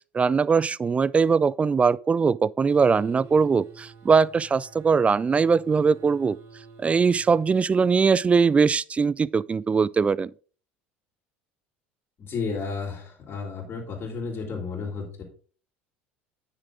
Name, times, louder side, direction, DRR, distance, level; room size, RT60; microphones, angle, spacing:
voice 1, 0.1-6.4 6.8-10.3, right 5 dB, 20° right, 0.4 m, -21 dB
sound 1, 2.7-7.6, right 5 dB, 45° right, 3.7 m, -48 dB
voice 2, 12.2-15.2, left 4 dB, 35° left, 4.0 m, -32 dB
10.0 x 6.9 x 3.8 m
hypercardioid pair, 70°, 6 cm